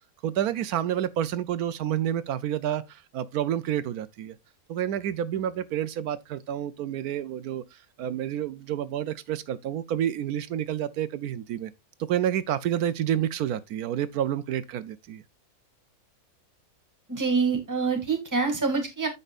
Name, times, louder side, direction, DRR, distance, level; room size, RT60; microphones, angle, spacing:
voice 1, 0.2-4.4 4.7-11.7 12.0-15.2, right 10 dB, 80° right, 1.1 m, -29 dB
voice 2, 17.1-19.1, right 4 dB, 10° right, 2.2 m, -26 dB
14.5 x 5.4 x 2.4 m
omnidirectional pair, 1.6 m